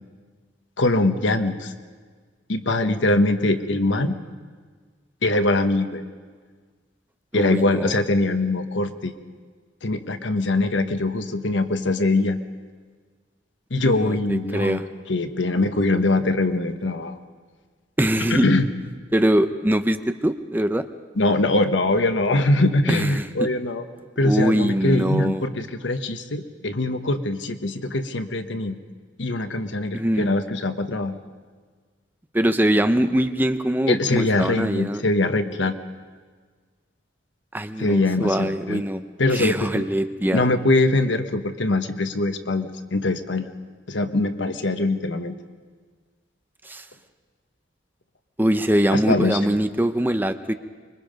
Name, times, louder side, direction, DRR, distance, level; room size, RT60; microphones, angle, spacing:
voice 1, 0.8-1.7 2.5-4.1 5.2-6.0 7.3-9.1 9.8-12.4 13.7-14.8 15.1-17.2 18.3-18.7 21.2-23.8 24.2-28.8 29.2-31.1 33.9-35.7 37.8-38.8 39.2-39.8 40.3-43.5 43.9-45.4 48.9-49.4, left 2 dB, 85° left, 8 dB, 1.2 m, -22 dB
voice 2, 7.3-8.0 13.8-14.8 18.0-18.5 19.1-20.9 22.9-23.5 24.2-25.4 29.9-30.3 32.3-35.0 37.5-39.0 39.3-40.5 46.6-46.8 48.4-50.5, right 1 dB, 10° right, 10 dB, 0.6 m, -23 dB
25.0 x 22.0 x 5.3 m, 1.5 s
head